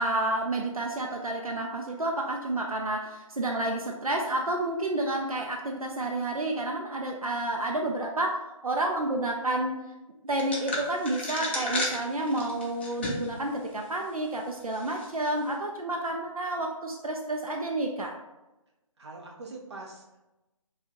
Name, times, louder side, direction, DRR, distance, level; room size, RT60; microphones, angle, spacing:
voice 1, 0.0-8.4 8.6-9.7 10.2-18.1, right 1 dB, 80° right, 1 dB, 0.5 m, -30 dB
sound 1, 10.4-13.4 13.8-13.9 14.7-15.1, left 1 dB, 20° left, 0.4 m, -33 dB
voice 2, 19.0-20.3, right 3 dB, 50° right, 0 dB, 0.8 m, -43 dB
4.3 x 2.3 x 2.8 m, 1.0 s
figure-of-eight pair, 145°, 18 cm